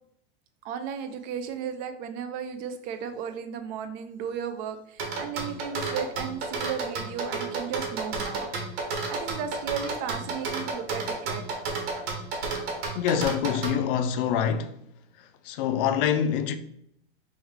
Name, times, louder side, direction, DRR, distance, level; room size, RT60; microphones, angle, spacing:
voice 1, 0.6-8.5 8.7-8.8 9.1-11.4, right 7 dB, 30° right, 0.3 m, -35 dB
sound 1, 5.0-13.8, right 4 dB, 65° right, 1.5 m, -31 dB
voice 2, 13.0-14.8 15.5-16.6, left 8 dB, 55° left, 0.5 m, -25 dB
4.3 x 3.2 x 3.5 m
supercardioid pair, 150°, 33 cm